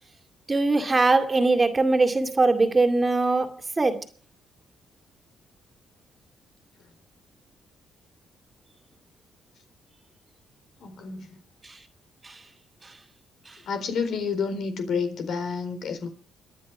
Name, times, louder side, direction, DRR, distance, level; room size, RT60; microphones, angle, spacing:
voice 1, 0.5-4.1 11.6-11.7 12.2-12.4, right 3 dB, 25° right, 2.3 m, -22 dB
voice 2, 10.8-11.4 13.7-16.1, left 5 dB, 70° left, 4.0 m, -29 dB
26.0 x 10.5 x 4.9 m
cardioid pair, 90°, 0 cm